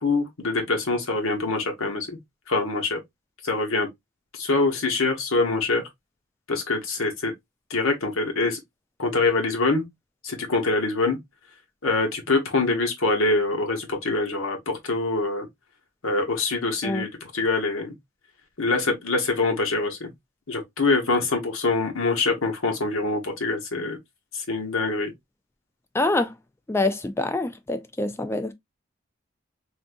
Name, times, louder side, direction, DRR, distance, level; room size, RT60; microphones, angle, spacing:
voice 1, 0.0-2.2 2.5-3.0 3.4-3.9 4.3-5.8 6.5-7.3 7.7-8.6 9.0-9.8 10.2-11.2 11.8-15.5 16.0-17.9 18.6-20.1 20.5-24.0 24.3-25.1, left 3 dB, 85° left, 1.1 m, -24 dB
voice 2, 25.9-26.3 26.7-28.5, left 2 dB, 10° left, 0.3 m, -25 dB
3.6 x 2.6 x 2.5 m
head